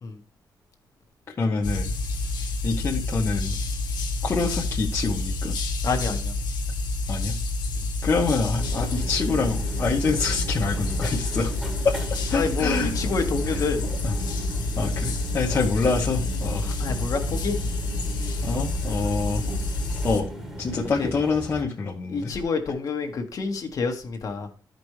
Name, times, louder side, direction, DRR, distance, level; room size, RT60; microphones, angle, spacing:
voice 1, 1.4-2.0 2.6-3.6 4.2-5.5 7.1-7.3 8.0-11.5 11.8-11.9 12.3-12.9 13.5-13.6 14.0-14.1 14.8-16.7 18.4-19.4 20.0-20.3 20.6-22.3, left 4 dB, 35° left, -2 dB, 1.0 m, -26 dB
sound 1, 1.6-20.2, left 2 dB, 80° left, 1.4 m, -28 dB
voice 2, 5.8-6.3 12.3-13.8 16.8-17.5 21.0-21.1 22.1-24.5, left 4 dB, 55° left, 4 dB, 1.5 m, -28 dB
sound 2, 8.5-21.6, right 1 dB, 5° right, 1.5 m, -36 dB
13.5 x 5.3 x 3.2 m, 0.35 s
wide cardioid pair, 150°, 7 cm